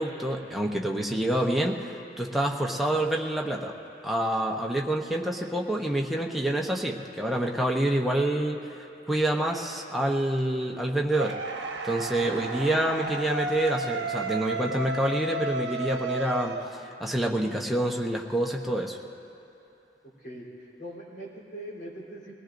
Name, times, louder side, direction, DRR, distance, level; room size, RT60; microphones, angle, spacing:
voice 1, 0.0-3.7 4.0-11.4 11.8-19.0, right 1 dB, ahead, -1 dB, 0.8 m, -27 dB
sound 1, 11.1-17.2, right 2 dB, 70° right, 1.0 m, -33 dB
voice 2, 20.2-22.3, right 1 dB, 50° left, -5 dB, 3.6 m, -41 dB
22.5 x 18.0 x 2.6 m, 2.8 s
head